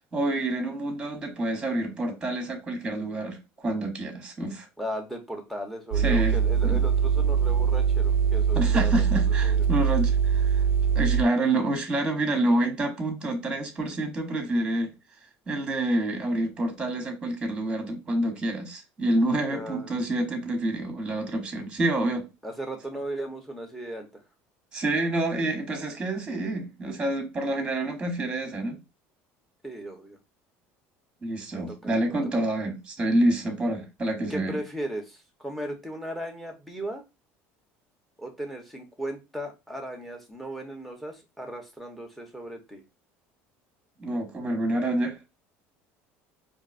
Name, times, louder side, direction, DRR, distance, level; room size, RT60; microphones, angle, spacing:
voice 1, 0.1-4.7 6.0-6.4 6.6-6.8 8.5-10.6 10.9-14.9 15.5-22.2 24.7-28.8 31.2-34.6 44.0-45.2, right 1 dB, 15° right, 1.2 m, -27 dB
voice 2, 4.8-9.6 19.5-19.9 22.4-24.2 29.6-30.2 31.5-32.1 34.3-37.0 38.2-42.8, right 1 dB, 5° left, 1.0 m, -37 dB
sound 1, 5.9-11.2, right 7 dB, 90° right, 0.3 m, -22 dB
4.6 x 2.7 x 2.5 m
cardioid pair, 130°, 5 cm